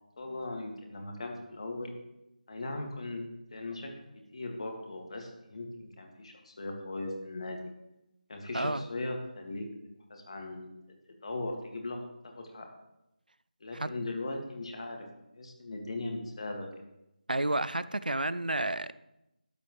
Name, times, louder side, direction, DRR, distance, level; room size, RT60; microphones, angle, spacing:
voice 1, 0.2-1.9 2.5-3.2 3.5-3.9 4.3-7.6 8.3-9.7 10.1-10.7 11.2-12.0 12.3-12.7 13.6-15.1 15.3-16.7, left 2 dB, 45° left, 3 dB, 2.1 m, -38 dB
voice 2, 17.3-18.9, right 2 dB, 80° right, 16 dB, 0.5 m, -30 dB
12.5 x 9.8 x 3.2 m, 0.90 s
figure-of-eight pair, 160°, 5 cm